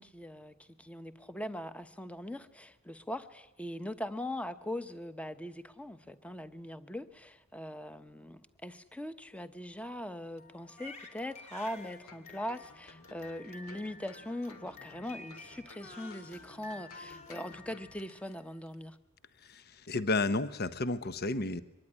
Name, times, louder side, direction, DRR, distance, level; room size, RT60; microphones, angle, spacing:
voice 1, 0.0-19.0, left 1 dB, 5° left, 11 dB, 1.0 m, -41 dB
Crying sobbing, 10.4-18.5, left 3 dB, 35° left, 2.7 m, -51 dB
sound 1, 12.1-18.3 18.7-18.8, left 3 dB, 85° left, 2.2 m, -55 dB
voice 2, 19.5-21.6, left 3 dB, 50° left, 13 dB, 0.9 m, -32 dB
23.5 x 20.0 x 9.8 m, 0.96 s
head